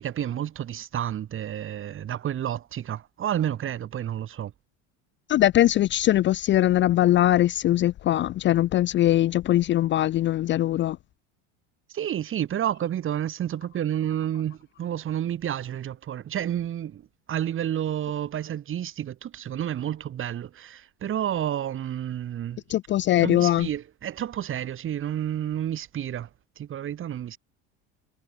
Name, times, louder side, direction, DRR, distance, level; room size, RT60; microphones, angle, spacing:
voice 1, 0.0-4.5 11.9-17.0 17.3-22.6 23.2-26.3 26.6-27.4, right 10 dB, 40° right, 5.4 m, -30 dB
voice 2, 5.3-11.0 22.7-23.7, left 13 dB, 35° left, 0.5 m, -21 dB
supercardioid pair, 125°, 32 cm